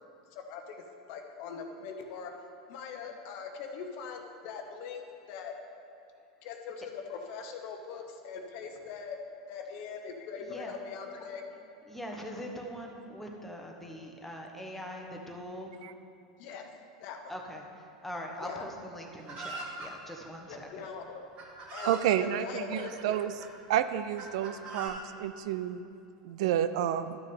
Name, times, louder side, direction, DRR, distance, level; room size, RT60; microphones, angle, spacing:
voice 1, 0.3-0.8 1.1-2.3 2.7-5.0 5.3-5.5 6.4-9.2 9.5-11.4 16.4-16.6 17.0-17.2 18.4-18.6 20.5-21.2 21.7-23.1, left 6 dB, 55° left, 4 dB, 0.9 m, -41 dB
voice 2, 10.4-10.8 11.9-15.7 17.3-20.9, equal, 5° left, 1 dB, 1.3 m, -42 dB
Chicken rooster, 19.3-19.9 20.8-20.9 21.4-22.1 22.9-23.5 24.2-24.9, right 3 dB, 40° right, 1.9 m, -41 dB
voice 3, 21.8-23.3 23.7-25.8 26.2-27.2, right 10 dB, 65° right, 12 dB, 0.3 m, -30 dB
12.0 x 6.3 x 3.6 m, 2.6 s
hypercardioid pair, 90°, 3 cm